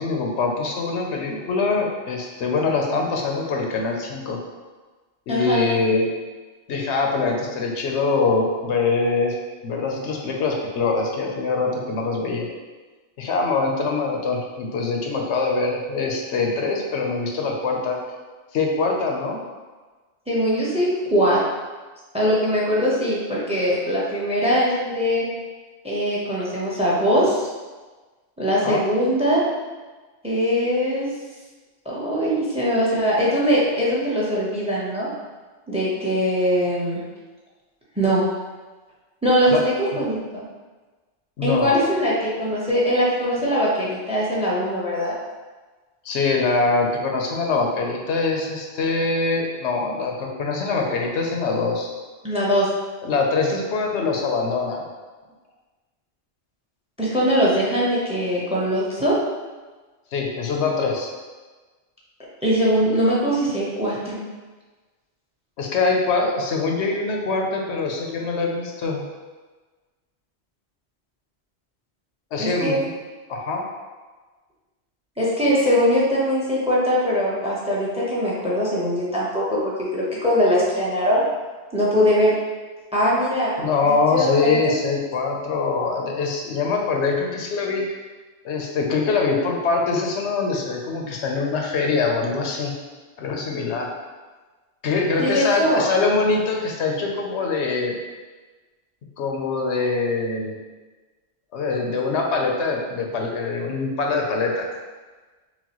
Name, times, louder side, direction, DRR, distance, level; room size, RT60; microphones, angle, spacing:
voice 1, 0.0-4.4 5.3-6.1 6.7-9.4 9.6-12.5 13.2-18.0 18.5-19.4 28.6-28.8 39.5-39.6 41.4-41.7 46.0-51.9 53.0-54.8 60.1-61.1 65.6-69.0 72.3-72.9 73.3-73.6 83.6-87.8 88.4-92.7 93.2-93.9 94.8-97.9 99.2-100.5 101.5-104.7, left 4 dB, 90° left, 1 dB, 0.9 m, -23 dB
voice 2, 5.3-5.6 20.3-21.4 22.1-25.3 25.8-27.4 28.4-29.4 30.2-31.1 31.8-35.1 35.7-37.0 38.0-38.2 39.2-40.4 41.4-45.1 52.2-52.7 57.0-59.2 62.4-64.2 72.4-72.8 75.2-81.2 81.7-82.3 82.9-83.5 83.9-84.7 95.2-95.9, equal, 5° right, -6 dB, 0.7 m, -21 dB
5.8 x 2.2 x 2.9 m, 1.3 s
omnidirectional pair, 1.1 m